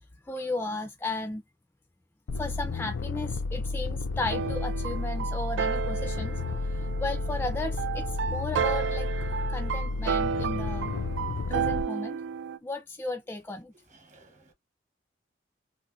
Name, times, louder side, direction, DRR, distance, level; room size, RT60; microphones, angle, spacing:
voice 1, 0.2-1.4 2.4-6.4 6.8-9.1 9.5-10.9 11.5-12.2 12.6-13.7, left 2 dB, 10° left, 0.3 m, -35 dB
sound 1, 2.3-11.8, left 3 dB, 80° left, 0.4 m, -32 dB
sound 2, 4.3-12.6, right 7 dB, 85° right, 0.3 m, -32 dB
voice 2, 13.9-14.5, right 2 dB, 40° right, 1.0 m, -57 dB
3.1 x 2.5 x 2.4 m
head